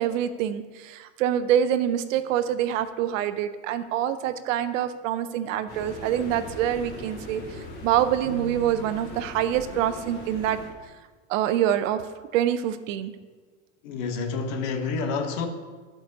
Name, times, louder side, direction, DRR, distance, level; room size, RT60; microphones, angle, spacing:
voice 1, 0.0-10.6 11.3-12.0 12.3-13.1, right 10 dB, 80° right, 0.7 m, -25 dB
sound 1, 5.7-10.7, left 1 dB, 25° left, 2.6 m, -40 dB
Keyboard (musical), 8.2-10.1, right 4 dB, 20° right, 1.8 m, -42 dB
voice 2, 13.8-15.5, left 4 dB, 70° left, 1.2 m, -28 dB
15.0 x 5.1 x 2.8 m
supercardioid pair, 130°, 39 cm